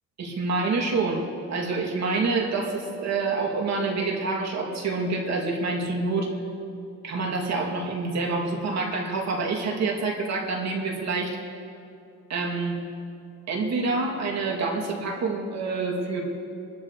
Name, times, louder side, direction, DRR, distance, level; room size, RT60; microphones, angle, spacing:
voice 1, 0.2-6.3 7.0-11.4 12.3-12.9 13.5-16.2, right 3 dB, 60° right, -1 dB, 3.1 m, -27 dB
26.5 x 13.0 x 3.4 m, 2.6 s
cardioid pair, 90°, 30 cm